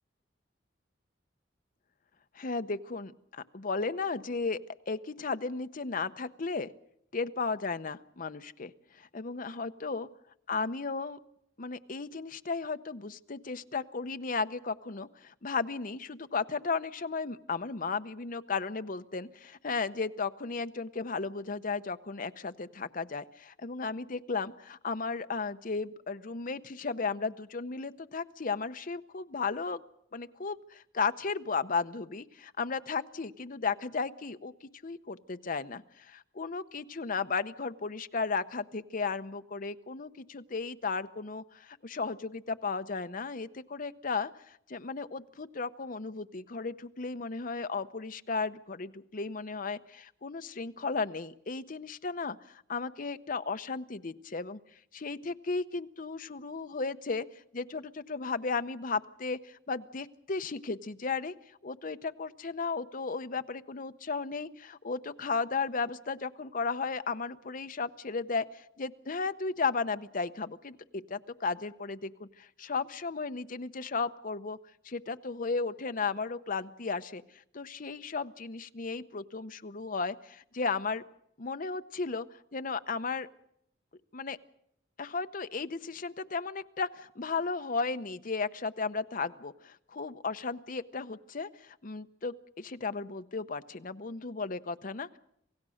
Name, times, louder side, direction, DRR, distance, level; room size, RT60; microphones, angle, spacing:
voice 1, 2.3-4.6 4.9-6.7 7.1-10.1 10.5-11.2 11.6-29.8 30.1-54.6 54.9-57.3 57.5-61.3 61.6-74.6 74.8-77.2 77.5-81.0 81.4-82.3 82.5-83.3 84.1-84.4 85.0-95.2, left 4 dB, 45° left, 10 dB, 0.8 m, -35 dB
27.0 x 16.5 x 6.4 m, 0.73 s
head